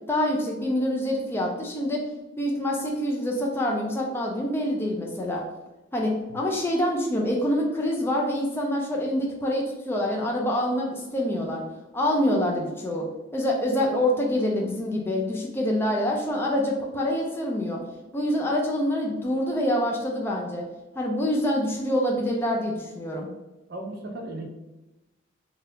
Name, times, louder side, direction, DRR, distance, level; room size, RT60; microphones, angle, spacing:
voice 1, 0.1-2.0 2.4-5.4 5.9-11.6 11.9-13.1 13.3-17.8 18.1-20.6 21.0-23.3, left 1 dB, 10° left, -2 dB, 0.3 m, -26 dB
voice 2, 23.7-24.5, right 1 dB, 55° right, 1 dB, 0.5 m, -36 dB
2.7 x 2.3 x 3.3 m, 1.0 s
head